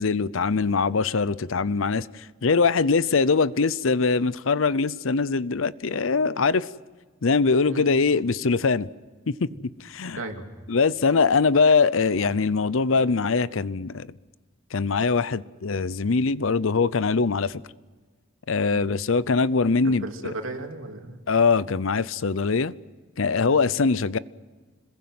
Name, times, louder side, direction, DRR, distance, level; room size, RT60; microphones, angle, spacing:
voice 1, 0.0-6.7 7.2-8.9 9.3-9.5 9.9-10.2 10.7-14.1 14.7-17.6 18.5-20.1 21.3-22.7 23.2-24.2, left 4 dB, 70° left, 0.7 m, -22 dB
voice 2, 10.1-10.4 18.7-18.9 19.8-21.2 23.5-23.6, right 2 dB, 80° right, 3.0 m, -35 dB
26.5 x 21.5 x 7.8 m
head